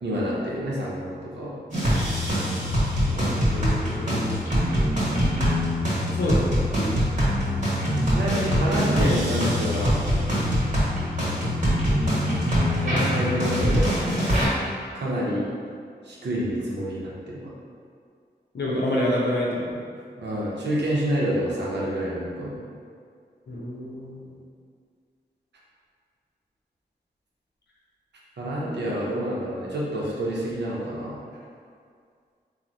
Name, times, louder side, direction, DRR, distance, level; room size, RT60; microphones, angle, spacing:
voice 1, 0.0-1.6 8.1-10.0 12.8-13.8 14.9-15.5 16.0-17.5 20.2-22.6 28.4-31.2, equal, 85° right, -5 dB, 0.6 m, -28 dB
sound 1, 1.7-14.5, equal, 45° right, 1.1 m, -23 dB
voice 2, 3.0-5.3 6.1-7.0 18.5-19.8 23.5-24.4 28.6-28.7, left 1 dB, 80° left, -5 dB, 0.6 m, -29 dB
3.2 x 2.1 x 2.5 m, 2.1 s
cardioid pair, 40°, 17 cm